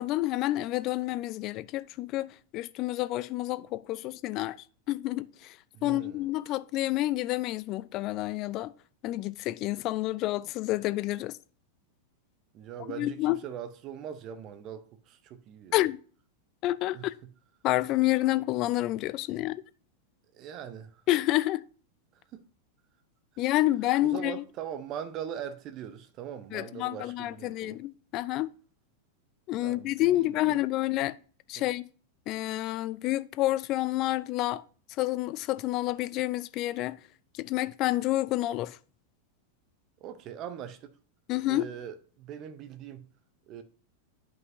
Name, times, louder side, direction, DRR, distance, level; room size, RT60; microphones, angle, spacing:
voice 1, 0.0-4.6 4.9-5.6 5.8-8.7 9.0-11.4 12.9-13.4 15.7-16.0 16.6-17.1 17.6-19.6 21.1-21.6 23.4-24.4 26.5-28.5 29.5-31.2 31.5-31.8 32.3-34.6 35.0-37.0 37.3-38.8 41.3-41.7, left 16 dB, 40° left, 0.4 m, -29 dB
voice 2, 5.7-6.3 12.5-15.8 16.9-17.0 20.3-21.0 22.1-22.4 24.0-27.8 29.6-30.5 31.6-31.7 40.0-41.0 41.4-43.1 43.5-43.6, right 9 dB, 35° right, 0.8 m, -41 dB
10.5 x 5.5 x 2.7 m
figure-of-eight pair, 90°, 0 cm